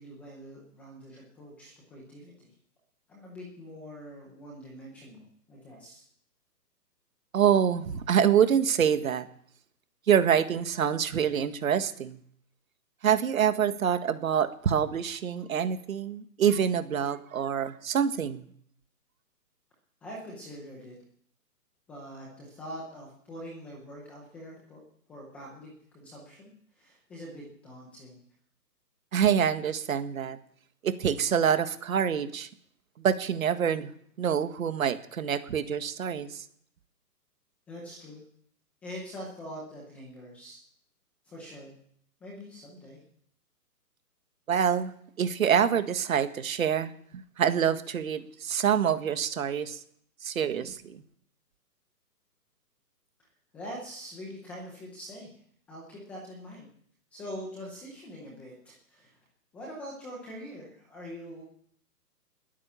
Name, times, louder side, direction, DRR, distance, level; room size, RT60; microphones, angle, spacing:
voice 1, 0.0-2.5 3.1-6.0 20.0-21.0 21.9-24.8 25.1-28.2 37.7-38.2 38.8-40.6 41.2-41.7 42.2-43.0 53.5-55.4 55.7-56.7 57.1-59.2 59.5-61.4, equal, 5° left, -3 dB, 0.7 m, -44 dB
voice 2, 7.3-9.3 10.1-12.2 13.0-18.5 29.1-30.4 30.8-32.5 33.0-33.9 34.2-36.4 44.5-44.9 45.2-49.8 50.2-51.0, right 8 dB, 55° right, 10 dB, 1.7 m, -26 dB
20.5 x 9.6 x 7.0 m, 0.64 s
hypercardioid pair, 160°, 49 cm